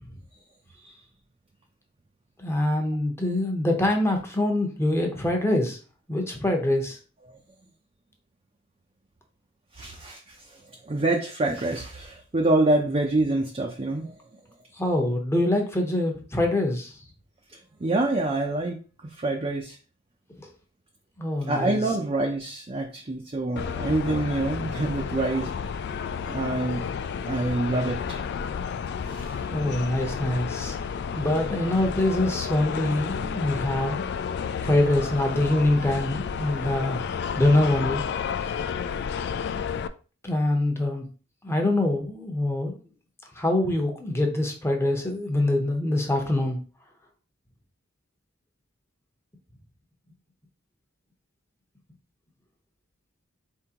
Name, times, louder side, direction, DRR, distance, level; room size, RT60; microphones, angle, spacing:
voice 1, 2.4-5.8 6.1-7.0 14.8-16.9 21.2-21.8 29.5-30.7 31.2-34.0 34.6-37.0 37.3-38.0 40.2-41.0 41.4-42.8 43.4-46.6, left 1 dB, 10° left, 2 dB, 0.8 m, -24 dB
voice 2, 9.8-10.2 10.9-14.1 17.8-18.8 19.2-19.7 21.5-25.5 26.3-26.8 27.3-28.2 29.1-29.2, right 2 dB, 30° right, 1 dB, 0.5 m, -26 dB
sound 1, 23.6-39.9, left 6 dB, 55° left, 0.3 m, -31 dB
4.3 x 3.6 x 2.9 m, 0.36 s
head